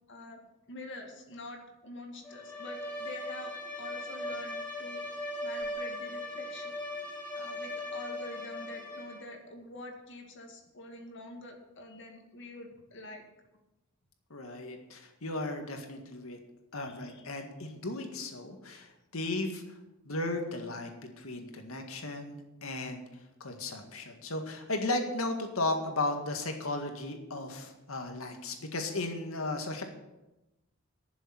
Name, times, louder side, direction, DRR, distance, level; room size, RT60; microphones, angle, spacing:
voice 1, 0.1-0.4 0.7-6.8 7.3-13.2 16.8-17.3 17.6-17.7, left 2 dB, 60° left, 3 dB, 2.1 m, -46 dB
Bowed string instrument, 2.2-9.3, left 1 dB, 10° left, 4.7 m, -39 dB
voice 2, 14.3-16.4 16.7-19.6 20.1-22.4 22.6-23.0 23.4-29.8, left 2 dB, 80° left, 4 dB, 1.9 m, -35 dB
11.5 x 7.2 x 8.9 m, 0.98 s
head